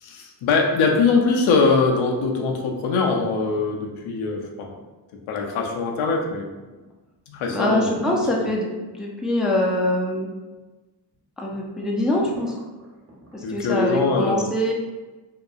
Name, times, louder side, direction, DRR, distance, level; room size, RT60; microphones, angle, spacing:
voice 1, 0.0-4.8 5.3-6.5 7.3-7.9 8.4-8.5 13.4-14.5, left 4 dB, 85° left, 1 dB, 0.6 m, -22 dB
sound 1, 6.7-7.0 7.5-7.6 7.9-8.9 9.5-10.2 10.5-10.6 11.1-11.2 11.5-13.3 13.8-13.9, right 1 dB, 30° right, 1.1 m, -41 dB
voice 2, 7.5-8.7 8.9-10.3 11.4-12.6 13.3-14.7, left 1 dB, ahead, -2 dB, 0.3 m, -23 dB
2.8 x 2.3 x 2.3 m, 1.2 s
cardioid pair, 70°, 47 cm